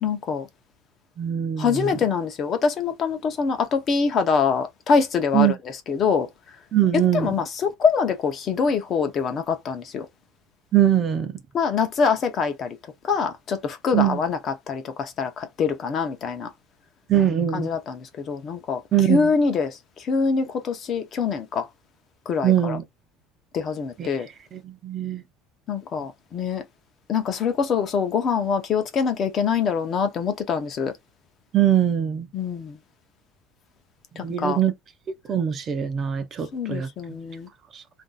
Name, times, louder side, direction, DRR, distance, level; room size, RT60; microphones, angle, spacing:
voice 1, 0.0-0.5 1.6-5.6 5.9-6.3 6.9-10.1 11.5-12.8 13.0-16.5 17.5-18.8 19.1-21.7 22.3-22.8 23.5-24.3 25.7-26.6 27.1-30.9 32.3-32.8 34.2-34.6 36.5-37.5, left 5 dB, 30° left, 0.6 m, -24 dB
voice 2, 1.2-1.9 5.3-5.5 6.7-7.3 10.7-11.3 13.9-14.2 17.1-17.7 18.9-19.3 22.4-22.8 24.0-24.1 24.5-25.2 31.5-32.3 34.2-34.7 35.3-36.9 37.7-37.8, right 10 dB, 30° right, 0.5 m, -22 dB
2.6 x 2.3 x 3.9 m
cardioid pair, 165°, 0 cm